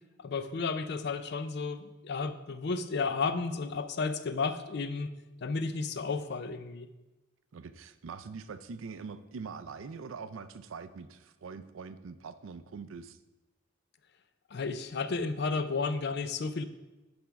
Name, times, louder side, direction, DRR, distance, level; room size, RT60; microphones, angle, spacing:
voice 1, 0.2-5.1 5.4-6.9 14.5-16.6, left 4 dB, 55° left, 11 dB, 0.5 m, -32 dB
voice 2, 7.5-13.2, right 5 dB, 80° right, 12 dB, 0.5 m, -43 dB
10.5 x 3.5 x 5.1 m, 1.1 s
head